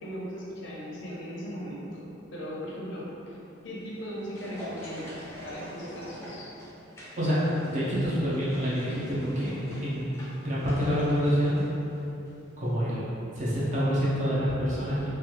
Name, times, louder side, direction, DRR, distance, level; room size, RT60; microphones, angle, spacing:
voice 1, 0.0-3.4 3.6-6.5, equal, 65° left, -5 dB, 0.6 m, -38 dB
sound 1, 3.8-12.4 12.6-12.7, equal, 15° left, 0.5 m, -46 dB
voice 2, 7.2-11.7 12.6-13.1 13.3-15.1, equal, 35° right, -9 dB, 0.6 m, -27 dB
3.2 x 2.3 x 3.0 m, 2.9 s
head